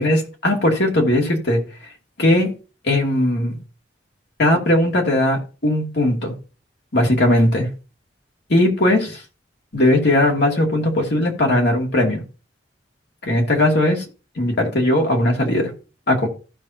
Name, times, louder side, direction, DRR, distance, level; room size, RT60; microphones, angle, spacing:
voice 1, 0.0-1.6 2.2-2.5 2.8-3.6 4.4-6.3 6.9-7.7 8.5-9.2 9.7-12.2 13.2-14.0 14.4-15.7 16.1-16.3, left 1 dB, 60° left, 2.4 m, -18 dB
15.0 x 5.7 x 2.8 m
head